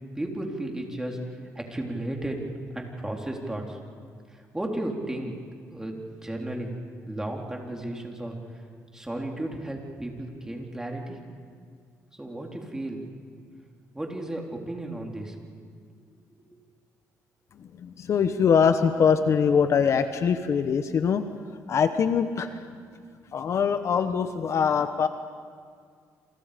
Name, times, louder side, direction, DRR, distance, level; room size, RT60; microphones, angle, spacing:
voice 1, 0.2-2.4 2.7-3.8 4.3-5.3 5.7-6.7 7.1-8.6 8.9-11.2 12.2-13.0 13.9-15.4 16.4-16.5, right 1 dB, 10° right, 0 dB, 3.8 m, -34 dB
voice 2, 17.6-21.2 21.7-22.6 23.3-25.1, left 6 dB, 50° left, 9 dB, 1.1 m, -23 dB
28.5 x 27.5 x 5.2 m, 2.1 s
cardioid pair, 115°, 6 cm